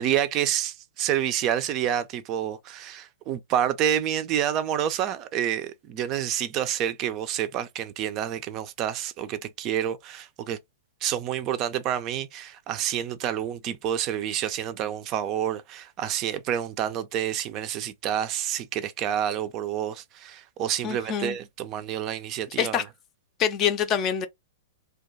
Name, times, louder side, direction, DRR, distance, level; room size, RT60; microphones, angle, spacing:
voice 1, 0.0-10.6 11.0-22.8, right 10 dB, 35° right, 0.4 m, -28 dB
voice 2, 20.8-21.4 22.6-22.8 23.4-24.3, left 8 dB, 35° left, 0.5 m, -25 dB
2.3 x 2.2 x 3.9 m
hypercardioid pair, 115°, 0 cm